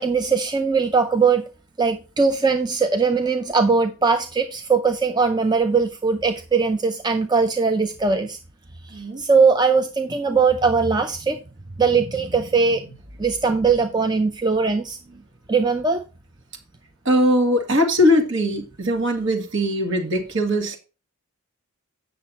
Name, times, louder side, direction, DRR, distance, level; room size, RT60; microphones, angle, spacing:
voice 1, 0.0-1.4 1.8-8.4 8.9-11.4 11.8-12.8 13.2-15.0 15.5-16.0, right 4 dB, 20° right, 0.5 m, -20 dB
voice 2, 17.1-20.8, equal, 55° right, 2.1 m, -20 dB
8.7 x 6.6 x 4.0 m
head